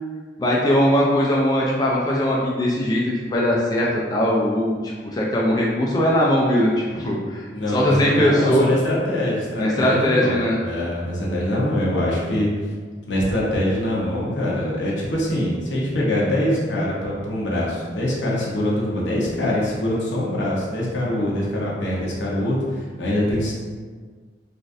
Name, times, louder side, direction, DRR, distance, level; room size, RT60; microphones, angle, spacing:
voice 1, 0.4-8.7 9.6-10.6, equal, 20° left, -4 dB, 0.4 m, -20 dB
voice 2, 7.5-12.5 13.1-23.5, left 1 dB, 80° left, -5 dB, 0.9 m, -23 dB
3.9 x 2.5 x 2.5 m, 1.5 s
head